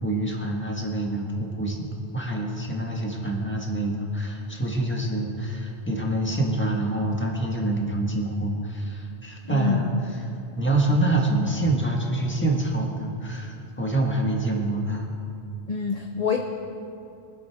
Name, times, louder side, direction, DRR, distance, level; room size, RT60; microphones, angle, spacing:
voice 1, 0.0-1.9 2.1-9.9 10.5-15.1, right 2 dB, 10° left, -1 dB, 1.5 m, -26 dB
voice 2, 9.5-9.9 15.7-16.4, left 6 dB, 45° left, 3 dB, 0.7 m, -26 dB
23.5 x 7.8 x 3.5 m, 2.7 s
omnidirectional pair, 1.1 m